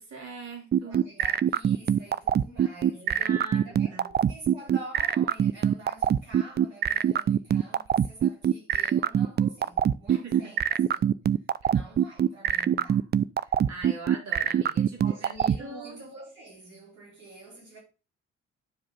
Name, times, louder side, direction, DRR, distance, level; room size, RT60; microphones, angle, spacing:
voice 1, 0.0-1.0 2.9-4.1 10.1-10.5 11.6-11.7 13.4-15.3 15.6-16.0, right 4 dB, 50° right, 3.7 m, -41 dB
sound 1, 0.7-15.6, right 9 dB, 30° right, 0.5 m, -23 dB
voice 2, 0.8-11.2 11.7-13.1 15.0-17.8, right 2 dB, 75° right, 4.8 m, -46 dB
11.5 x 5.0 x 4.0 m
figure-of-eight pair, 45°, 34 cm